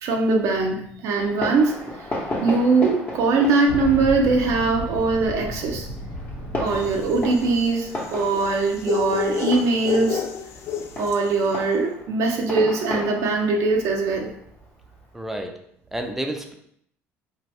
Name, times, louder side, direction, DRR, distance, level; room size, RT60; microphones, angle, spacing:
voice 1, 0.0-2.1 2.4-5.9 6.6-10.2 11.0-14.3, right 3 dB, 65° right, 1 dB, 0.5 m, -21 dB
Fireworks, 1.2-15.3, left 1 dB, 30° left, 0.9 m, -35 dB
Boom, 3.7-8.4 8.7-8.8 9.9-10.0, left 1 dB, 90° left, 1.2 m, -34 dB
sound 1, 6.8-11.3, left 7 dB, 55° left, 0.4 m, -29 dB
voice 2, 15.1-15.5 15.9-16.5, right 1 dB, 5° right, 4 dB, 0.5 m, -30 dB
2.7 x 2.5 x 3.2 m, 0.71 s
supercardioid pair, 95°, 6 cm